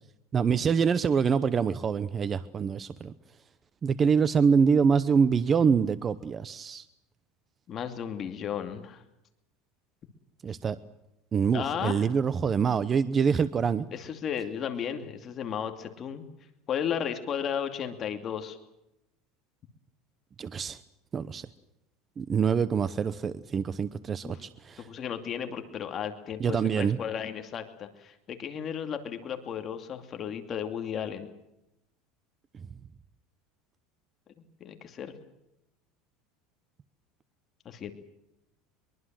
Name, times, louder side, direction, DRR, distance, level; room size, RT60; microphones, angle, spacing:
voice 1, 0.3-3.1 3.8-6.8 10.4-10.8 11.3-13.9 20.4-20.8 21.1-21.5 22.2-24.9 26.4-27.0, right 6 dB, 20° right, 15 dB, 0.8 m, -25 dB
voice 2, 7.7-9.0 11.5-12.1 13.9-16.2 16.7-18.6 24.2-24.4 24.8-31.3 34.6-35.1 37.6-37.9, left 8 dB, 30° left, 6 dB, 2.6 m, -34 dB
23.5 x 23.0 x 7.6 m, 0.86 s
supercardioid pair, 155°, 0 cm